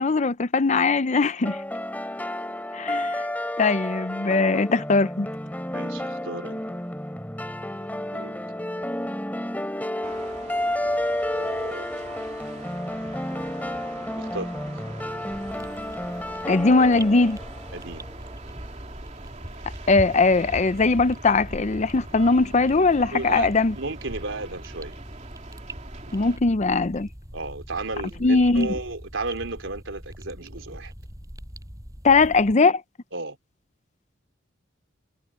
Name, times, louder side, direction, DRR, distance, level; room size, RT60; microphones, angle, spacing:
voice 1, 0.0-1.6 2.7-3.2 3.6-5.3 16.5-17.4 19.9-23.7 26.1-27.1 28.2-28.7 32.0-32.8, left 3 dB, 35° left, 0.6 m, -20 dB
sound 1, 1.4-18.3, left 1 dB, 10° left, 3.4 m, -31 dB
voice 2, 5.7-6.8 8.1-8.4 11.3-11.9 14.2-14.5 17.7-18.1 23.1-24.9 27.3-30.9 33.1-33.4, right 3 dB, 75° right, 3.7 m, -34 dB
sound 2, 10.0-26.4, right 3 dB, 35° right, 3.1 m, -44 dB
sound 3, 15.3-32.5, equal, 20° right, 6.4 m, -41 dB
head